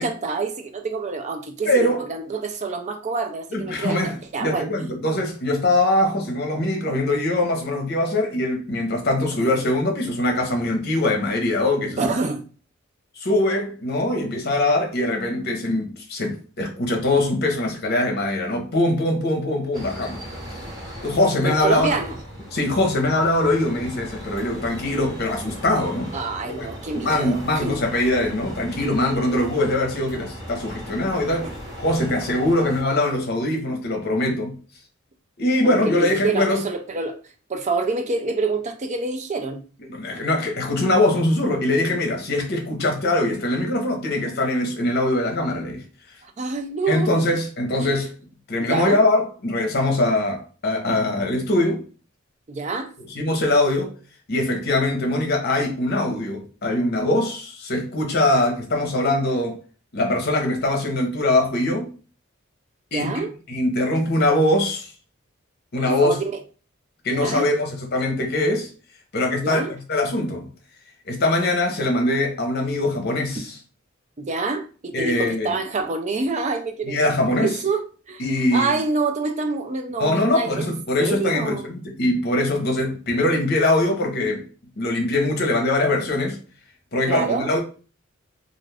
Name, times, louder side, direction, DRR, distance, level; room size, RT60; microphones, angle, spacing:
voice 1, 0.0-4.9 12.0-12.4 21.4-22.2 26.1-27.8 31.4-31.5 35.6-37.2 37.5-39.6 46.2-47.2 47.8-47.9 48.6-49.0 52.5-52.9 62.9-63.3 66.0-66.2 67.1-67.5 69.4-69.7 74.2-77.0 77.4-78.2 78.5-80.7 81.0-81.7 87.1-87.5, right 4 dB, 35° right, 0.4 m, -27 dB
voice 2, 1.6-2.0 3.5-4.1 4.4-12.1 13.2-20.2 21.0-22.0 22.5-26.1 26.4-26.7 26.9-34.5 35.4-36.6 39.9-45.8 46.9-48.1 48.5-51.8 53.0-53.9 54.3-59.6 59.9-61.9 62.9-64.9 65.7-66.2 67.0-68.7 69.1-70.5 71.1-73.5 74.9-75.5 76.8-77.6 78.2-78.8 80.0-84.4 84.8-86.4 86.9-87.6, left 1 dB, 50° left, 0.8 m, -22 dB
sound 1, 19.7-32.8, equal, 20° right, 0.9 m, -38 dB
2.5 x 2.4 x 3.3 m
head